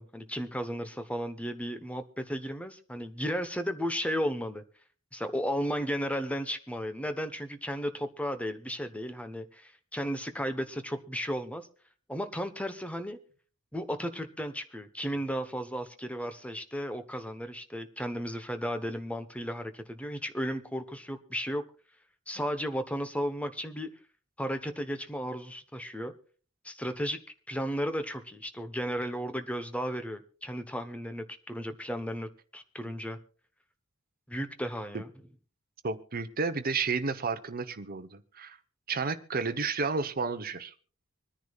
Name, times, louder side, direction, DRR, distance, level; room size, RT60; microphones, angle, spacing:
voice 1, 0.0-4.6 5.1-11.7 12.1-13.2 13.7-21.7 22.3-23.9 24.4-26.1 26.6-27.2 27.5-33.2 34.3-35.1, equal, 5° left, 9 dB, 1.0 m, -34 dB
voice 2, 35.8-38.6 38.9-40.7, right 4 dB, 45° right, 9 dB, 1.0 m, -31 dB
25.5 x 10.0 x 2.4 m, 0.40 s
head